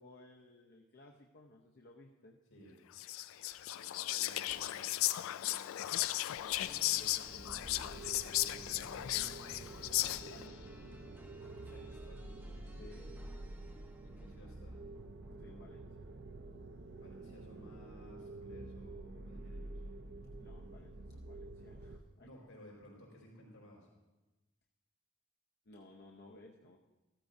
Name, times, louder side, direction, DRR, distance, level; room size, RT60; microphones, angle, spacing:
voice 1, 0.0-2.4 3.7-5.0 5.4-8.1 10.0-10.6 12.8-13.4 15.4-16.1 20.4-22.3 25.7-26.8, left 2 dB, 50° left, 0 dB, 0.7 m, -58 dB
Whispering, 2.9-10.5, left 15 dB, 70° left, 0.3 m, -36 dB
voice 2, 4.3-5.0 11.4-12.8 14.0-14.8 17.0-19.8 22.2-23.9, equal, 90° left, -2 dB, 4.5 m, -58 dB
sound 1, 6.5-16.4, right 1 dB, 10° right, 0.6 m, -58 dB
sound 2, 7.3-22.0, right 2 dB, 55° right, 0.6 m, -49 dB
14.0 x 13.5 x 2.6 m, 1.1 s
head